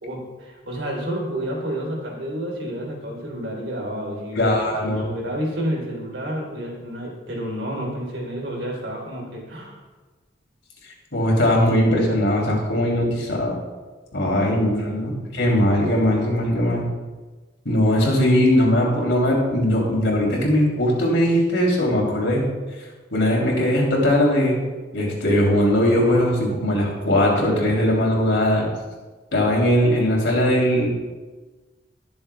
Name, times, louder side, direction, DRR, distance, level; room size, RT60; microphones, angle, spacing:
voice 1, 0.0-9.8 14.4-15.3, equal, 90° right, -2 dB, 3.4 m, -30 dB
voice 2, 4.4-5.0 11.1-13.5 14.1-16.9 17.6-22.4 23.1-24.5 24.9-28.7 29.3-30.9, left 1 dB, 80° left, -2 dB, 3.1 m, -20 dB
20.0 x 7.1 x 2.3 m, 1.3 s
head